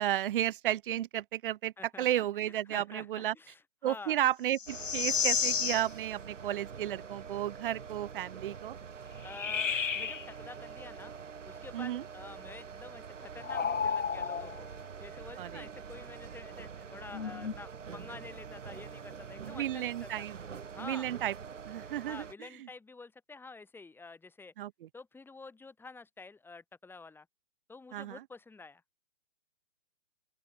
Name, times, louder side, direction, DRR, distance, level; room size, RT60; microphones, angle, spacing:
voice 1, 0.0-3.3 3.8-8.8 11.7-12.0 15.4-15.6 19.4-20.4 20.8-21.3 21.6-22.7 24.6-24.9 27.9-28.2, right 12 dB, 45° right, 1.3 m, -33 dB
voice 2, 1.8-4.2 9.2-11.1 11.5-14.7 15.0-20.3 20.7-21.1 22.0-24.5 24.9-27.3 27.7-28.8, left 3 dB, 5° left, 6.3 m, -49 dB
sound 1, 4.5-5.9 9.2-10.2 13.4-14.6 17.1-17.5, left 6 dB, 85° left, 2.9 m, -31 dB
sound 2, 4.7-22.3, right 6 dB, 80° right, 5.3 m, -46 dB
open air
hypercardioid pair, 145°, 37 cm